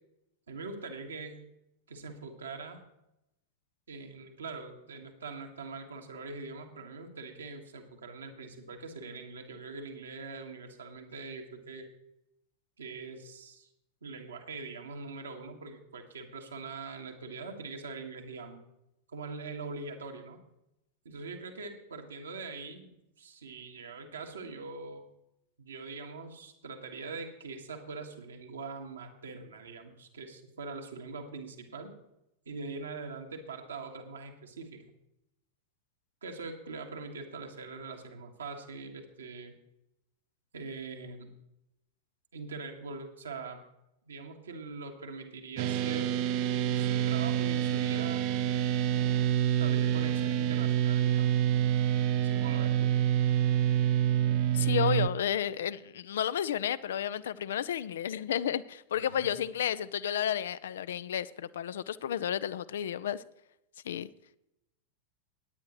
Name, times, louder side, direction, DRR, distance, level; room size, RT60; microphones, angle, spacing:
voice 1, 0.5-1.4 1.9-2.8 3.9-11.9 12.8-13.7 14.0-18.6 19.1-20.4 21.1-25.0 25.6-31.9 32.5-34.8 36.2-39.5 40.5-41.3 42.3-43.6 44.1-46.2 46.5-48.8 49.6-51.4 52.2-52.9 58.9-59.3, right 4 dB, 70° right, 1.7 m, -43 dB
sound 1, 45.6-55.1, right 11 dB, 45° right, 0.6 m, -27 dB
voice 2, 54.5-63.2 63.9-64.1, left 10 dB, 60° left, 0.4 m, -32 dB
17.5 x 9.4 x 3.1 m
figure-of-eight pair, 90°, 0 cm